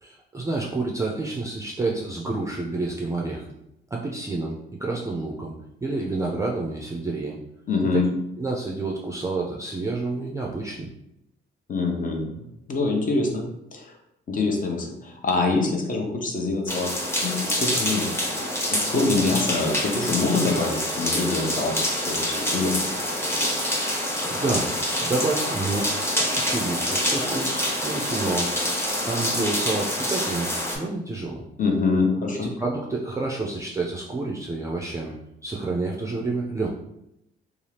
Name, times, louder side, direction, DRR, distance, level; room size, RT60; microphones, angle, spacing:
voice 1, 0.0-3.5 3.9-5.5 5.8-7.4 7.9-8.0 8.4-10.9 23.8-24.0 24.3-24.7 25.0-28.5 29.0-31.5 32.3-35.1 35.4-36.7, right 3 dB, 15° right, -2 dB, 0.4 m, -29 dB
voice 2, 7.7-8.1 11.7-13.9 14.3-16.9 17.2-18.2 18.9-22.9 31.6-32.5, left 3 dB, 45° left, 1 dB, 0.7 m, -25 dB
sound 1, 16.7-30.8, equal, 10° left, 0.7 m, -26 dB
2.7 x 2.4 x 3.2 m, 0.81 s
cardioid pair, 90°, 20 cm